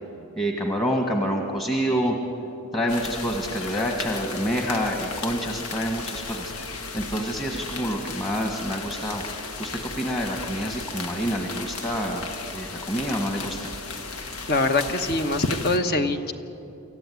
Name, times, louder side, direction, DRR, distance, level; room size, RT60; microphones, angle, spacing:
voice 1, 0.4-2.2 2.7-6.7 6.9-9.2 9.6-12.2 12.5-13.7, equal, 20° left, 2 dB, 1.6 m, -27 dB
sound 1, 2.9-15.8, left 4 dB, 75° left, 1.7 m, -35 dB
voice 2, 14.5-16.3, left 2 dB, 45° left, 7 dB, 1.1 m, -23 dB
25.5 x 14.5 x 9.5 m, 2.9 s
head